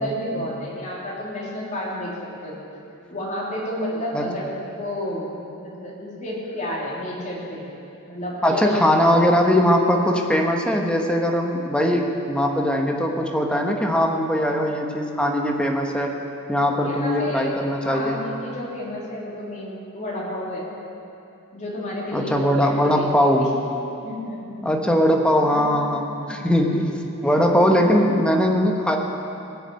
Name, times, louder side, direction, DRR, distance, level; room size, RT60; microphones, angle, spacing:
voice 1, 0.0-2.6 3.1-7.7 8.1-9.3 16.8-20.7 21.5-23.5 24.0-24.9 25.5-25.6 26.3-26.4 27.3-27.4 27.7-27.8, left 1 dB, 35° left, -5 dB, 3.5 m, -31 dB
voice 2, 8.4-16.1 16.5-18.2 22.1-23.5 24.6-26.9 27.2-29.0, equal, 5° left, 1 dB, 1.3 m, -20 dB
19.5 x 7.0 x 8.8 m, 2.8 s
head